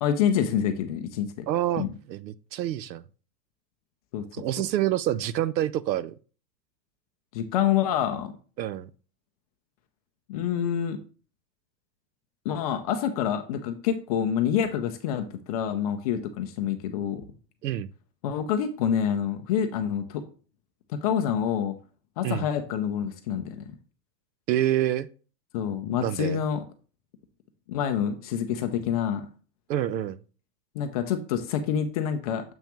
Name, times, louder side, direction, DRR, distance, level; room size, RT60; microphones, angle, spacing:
voice 1, 0.0-1.4 1.8-1.9 4.1-4.2 7.3-8.3 10.3-11.0 12.5-17.3 18.2-20.2 20.9-21.7 22.2-23.6 25.5-26.6 27.7-29.2 30.8-32.4, left 9 dB, 25° left, 0.3 m, -27 dB
voice 2, 1.5-3.0 4.3-6.2 8.6-8.9 17.6-17.9 22.2-22.5 24.5-25.1 26.0-26.4 29.7-30.2, right 12 dB, 85° right, 0.7 m, -27 dB
7.2 x 5.7 x 3.0 m
hypercardioid pair, 125°, 50 cm